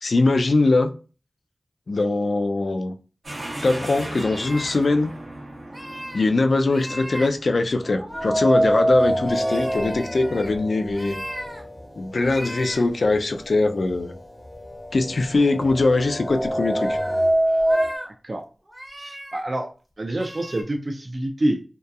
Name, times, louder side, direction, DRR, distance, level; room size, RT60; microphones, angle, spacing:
voice 1, 0.0-0.9 1.9-2.9 3.6-5.1 6.1-11.2 12.0-14.2 14.9-17.0, left 3 dB, 80° left, 0.3 m, -21 dB
sound 1, 3.2-14.0, right 1 dB, 80° right, 0.9 m, -40 dB
sound 2, 4.0-4.8 5.6-6.3 6.7-7.3 7.8-8.7 9.2-10.5 10.9-11.6 12.1-12.8 13.3-13.4 15.4-15.5 16.0-16.3 16.7-17.2 17.6-18.1 18.6-19.4 20.1-20.6, equal, 20° right, 0.7 m, -37 dB
sound 3, 8.1-12.2 12.5-12.6 13.6-13.7 14.1-17.9, right 1 dB, 40° left, 0.6 m, -24 dB
voice 2, 18.1-18.4 19.0-19.7 20.0-21.6, right 1 dB, 50° right, 0.4 m, -27 dB
2.7 x 2.2 x 2.3 m
wide cardioid pair, 50°, 0 cm